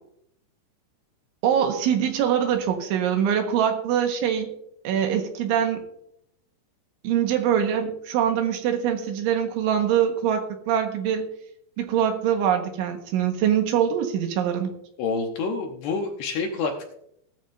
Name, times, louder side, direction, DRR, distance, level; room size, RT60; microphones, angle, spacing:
voice 1, 1.4-4.5 4.9-5.8 7.0-11.3 11.8-14.7, right 9 dB, 75° right, 4 dB, 3.7 m, -23 dB
voice 2, 15.0-16.9, left 4 dB, 70° left, 3 dB, 2.7 m, -28 dB
18.0 x 13.5 x 2.7 m, 0.74 s
omnidirectional pair, 5.8 m